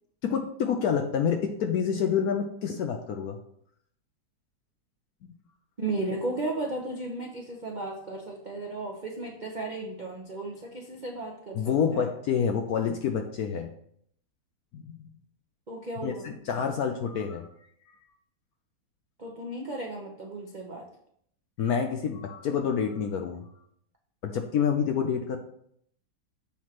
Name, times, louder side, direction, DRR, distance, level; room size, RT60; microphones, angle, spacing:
voice 1, 0.2-3.4 11.6-13.7 14.7-15.0 16.0-17.5 21.6-23.4 24.2-25.4, left 7 dB, 70° left, 5 dB, 0.9 m, -28 dB
voice 2, 5.8-12.1 15.7-16.3 19.2-20.9, right 2 dB, 80° right, -1 dB, 0.4 m, -35 dB
7.2 x 3.1 x 5.7 m, 0.68 s
omnidirectional pair, 2.1 m